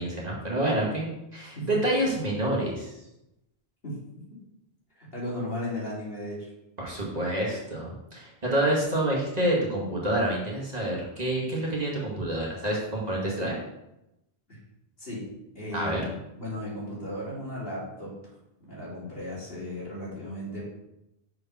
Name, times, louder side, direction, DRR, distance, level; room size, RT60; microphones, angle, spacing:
voice 1, 0.0-2.9 6.8-13.6 15.7-16.0, right 1 dB, 40° right, -4 dB, 1.9 m, -28 dB
voice 2, 5.0-6.5 14.5-14.6 15.0-15.3 15.5-18.1 18.6-20.7, left 1 dB, 65° left, -7 dB, 3.2 m, -35 dB
6.0 x 5.1 x 5.5 m, 0.89 s
omnidirectional pair, 1.1 m